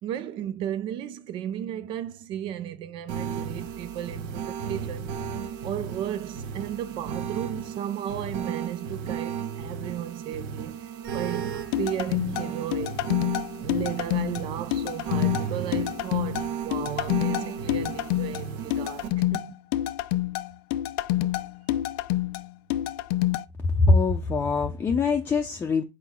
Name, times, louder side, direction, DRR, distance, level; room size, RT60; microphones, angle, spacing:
voice 1, 0.0-5.2 5.6-13.0 13.6-19.6, right 11 dB, 50° right, 0.5 m, -34 dB
sound 1, 3.1-19.1, right 7 dB, 75° right, 1.3 m, -34 dB
sound 2, 11.7-23.4, left 15 dB, 85° left, 0.5 m, -27 dB
voice 2, 23.6-25.8, left 3 dB, 20° left, 0.6 m, -23 dB
5.9 x 4.7 x 3.6 m
cardioid pair, 155°, 11 cm